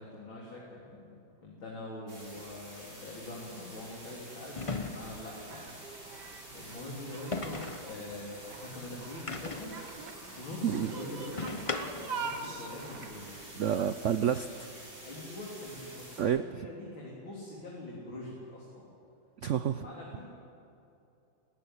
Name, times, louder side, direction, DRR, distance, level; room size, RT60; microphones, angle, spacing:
voice 1, 0.0-4.5 4.9-5.7 6.5-9.8 10.3-11.6 12.0-13.8 14.1-14.2 15.0-18.9 19.7-20.3, left 2 dB, 90° left, -5 dB, 4.4 m, -44 dB
sound 1, 2.1-16.2, right 1 dB, 35° right, 7.3 m, -49 dB
sound 2, 2.4-2.5 4.6-5.3 7.3-7.9 9.3-9.8 11.4-12.2, left 3 dB, 25° left, 0.7 m, -37 dB
sound 3, 4.8-13.4, right 5 dB, 60° right, 2.1 m, -44 dB
voice 2, 13.6-14.5 16.2-16.4 19.4-19.8, right 9 dB, 90° right, 11 dB, 0.6 m, -28 dB
19.0 x 17.5 x 9.9 m, 2.6 s
omnidirectional pair, 2.1 m